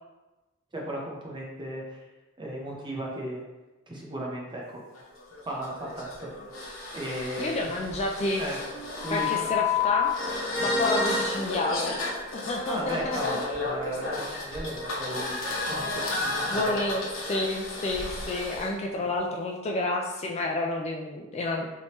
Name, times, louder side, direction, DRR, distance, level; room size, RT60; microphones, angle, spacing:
voice 1, 0.7-2.0 2.4-3.4 3.9-4.8 5.5-6.3 6.9-7.7 8.4-8.6 9.0-9.5 10.6-10.7 12.3-16.7, right 1 dB, 20° right, -2 dB, 0.7 m, -36 dB
sound 1, 4.9-18.7, left 3 dB, 70° left, 0.8 m, -31 dB
voice 2, 7.4-8.5 9.1-10.1 10.6-12.0 12.3-13.4 16.5-21.7, left 2 dB, 30° left, 1 dB, 0.3 m, -29 dB
3.4 x 2.8 x 2.9 m, 1.1 s
head